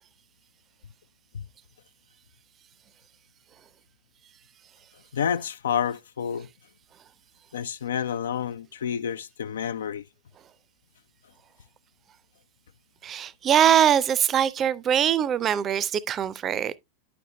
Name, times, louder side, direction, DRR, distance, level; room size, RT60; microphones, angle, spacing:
voice 1, 5.1-6.5 7.5-10.0, left 8 dB, 65° left, 0.3 m, -29 dB
voice 2, 13.0-16.8, right 9 dB, 25° right, 0.5 m, -22 dB
9.7 x 6.9 x 2.2 m
figure-of-eight pair, 90°, 0 cm